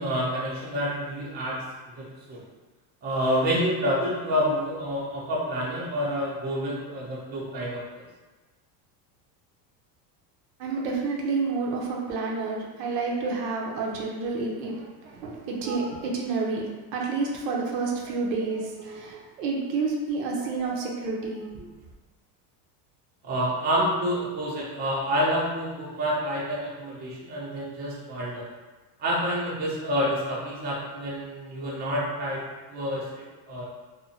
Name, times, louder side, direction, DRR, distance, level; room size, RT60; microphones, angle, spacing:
voice 1, 0.0-1.6 2.0-2.4 3.0-8.1 23.2-28.5 29.0-33.6, equal, 20° right, -6 dB, 0.5 m, -28 dB
voice 2, 10.6-21.7, right 4 dB, 75° right, -1 dB, 0.8 m, -29 dB
2.6 x 2.1 x 2.8 m, 1.2 s
supercardioid pair, 135°, 50 cm